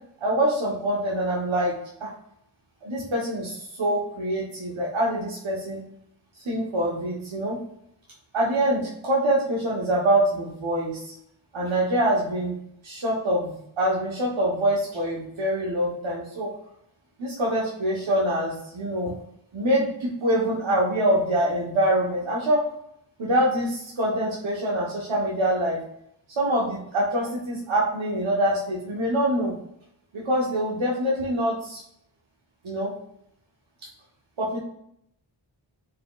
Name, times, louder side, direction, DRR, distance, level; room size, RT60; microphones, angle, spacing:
voice 1, 0.2-2.1 2.8-5.8 6.4-7.6 8.3-11.1 11.5-12.5 12.8-16.5 17.2-19.1 19.5-22.6 23.2-25.8 26.4-29.5 30.1-31.8 32.6-32.9 34.4-34.6, right 1 dB, 70° right, -5 dB, 1.1 m, -25 dB
4.8 x 2.9 x 2.3 m, 0.71 s
wide cardioid pair, 60°, 48 cm